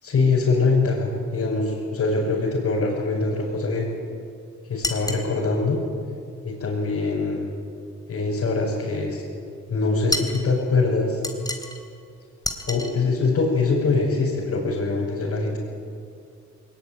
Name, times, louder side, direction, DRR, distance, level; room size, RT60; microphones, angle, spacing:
voice 1, 0.0-3.9 4.7-5.8 6.4-7.5 8.1-9.2 9.7-11.2 12.6-15.6, left 3 dB, 55° left, -5 dB, 6.4 m, -23 dB
sound 1, 4.8-5.3 10.1-10.4 11.2-11.8 12.4-12.9, left 1 dB, 10° left, 3.6 m, -28 dB
21.0 x 20.0 x 9.5 m, 2.4 s
cardioid pair, 90°, 30 cm